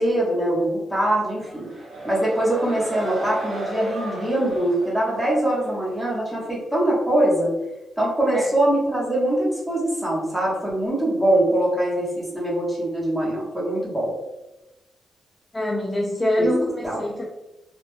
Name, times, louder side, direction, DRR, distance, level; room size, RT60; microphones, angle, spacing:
voice 1, 0.0-1.7 2.0-7.5 8.0-14.1 16.4-16.5 16.8-17.0, right 1 dB, 5° right, -6 dB, 0.9 m, -23 dB
sound 1, 1.3-5.8, right 1 dB, 50° right, 1.2 m, -33 dB
voice 2, 15.5-17.3, left 1 dB, 10° left, -2 dB, 0.3 m, -24 dB
2.2 x 2.1 x 3.1 m, 1.0 s
cardioid pair, 115°, 0 cm